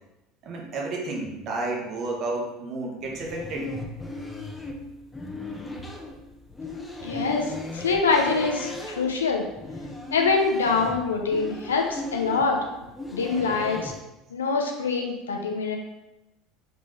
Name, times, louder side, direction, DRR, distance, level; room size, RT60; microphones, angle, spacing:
voice 1, 0.4-3.7, right 2 dB, 50° right, 0 dB, 1.0 m, -31 dB
sound 1, 3.0-14.0, left 1 dB, 15° left, 0.7 m, -37 dB
voice 2, 7.0-9.4 10.1-12.6 13.1-13.9 14.3-15.8, left 4 dB, 80° left, 2 dB, 0.6 m, -24 dB
3.9 x 3.6 x 3.3 m, 0.95 s
figure-of-eight pair, 70°, 0 cm